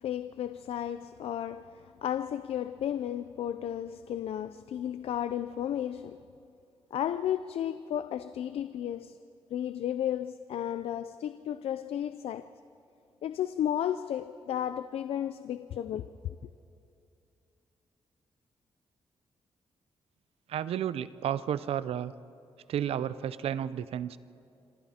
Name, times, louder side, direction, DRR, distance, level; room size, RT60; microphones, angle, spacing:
voice 1, 0.0-6.2 6.9-9.2 9.5-12.5 13.2-16.5, left 10 dB, 85° left, 0.5 m, -33 dB
voice 2, 20.5-22.1 22.7-24.2, right 10 dB, 90° right, 0.6 m, -32 dB
26.5 x 26.0 x 4.3 m
wide cardioid pair, 160°, 10 cm